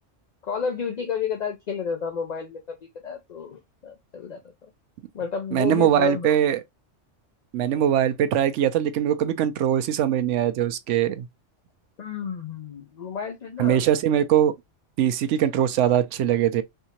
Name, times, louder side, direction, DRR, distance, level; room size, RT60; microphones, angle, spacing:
voice 1, 0.4-2.6 3.0-4.4 5.1-6.3 12.0-13.8, left 6 dB, 45° left, 0.6 m, -31 dB
voice 2, 5.5-6.6 7.5-11.3 13.6-14.5 15.0-16.6, right 10 dB, 80° right, 0.9 m, -21 dB
3.5 x 2.8 x 2.8 m
omnidirectional pair, 1.3 m